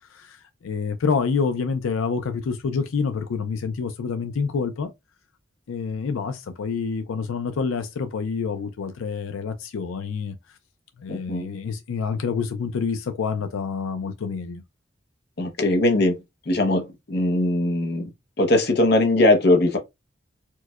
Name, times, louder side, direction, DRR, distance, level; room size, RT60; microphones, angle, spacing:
voice 1, 0.1-4.9 5.7-10.4 11.0-14.6, left 5 dB, 90° left, 0.4 m, -27 dB
voice 2, 11.1-11.5 15.4-16.2 16.5-16.8 17.1-18.1 18.4-19.8, left 1 dB, 50° left, 0.7 m, -20 dB
4.5 x 2.1 x 2.3 m
head